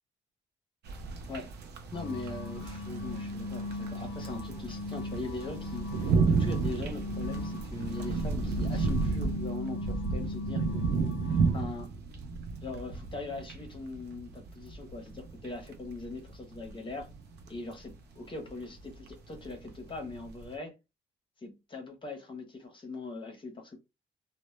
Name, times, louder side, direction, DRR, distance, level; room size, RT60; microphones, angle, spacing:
sound 1, 0.9-20.5, right 4 dB, 75° right, 0.5 m, -33 dB
sound 2, 1.9-11.6, left 2 dB, 80° left, 0.4 m, -38 dB
voice 1, 1.9-11.9 12.6-17.1 17.5-20.7 21.4-23.8, left 3 dB, 30° left, 0.7 m, -41 dB
2.1 x 2.0 x 3.0 m
cardioid pair, 105°, 17 cm